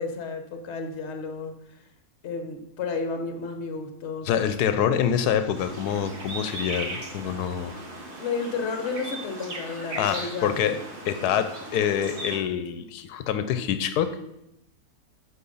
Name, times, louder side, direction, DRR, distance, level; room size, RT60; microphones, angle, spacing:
voice 1, 0.0-1.8 2.2-4.3 4.8-5.0 7.7-7.9 8.2-10.7, left 4 dB, 50° left, 6 dB, 1.2 m, -32 dB
voice 2, 4.2-7.8 10.0-10.8 11.0-14.3, left 9 dB, 85° left, 11 dB, 1.1 m, -26 dB
sound 1, 5.5-12.4, right 2 dB, 45° right, 1.7 m, -38 dB
8.6 x 4.6 x 5.4 m, 0.83 s
omnidirectional pair, 1.6 m